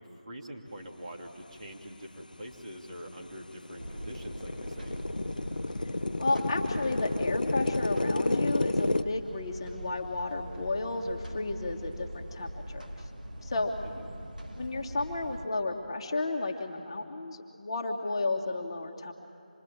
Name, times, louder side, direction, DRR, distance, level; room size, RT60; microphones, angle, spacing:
voice 1, 0.0-5.0 13.8-14.1, equal, 45° right, 0 dB, 2.7 m, -44 dB
sound 1, 2.5-2.6 3.1-9.0, left 2 dB, 70° left, 0.6 m, -31 dB
sound 2, 3.8-15.5, equal, 75° right, 1.9 m, -42 dB
voice 2, 6.2-13.1 13.4-13.7 14.5-19.1, left 2 dB, 35° left, 2 dB, 1.6 m, -33 dB
26.5 x 22.0 x 8.8 m, 2.6 s
figure-of-eight pair, 155°, 5 cm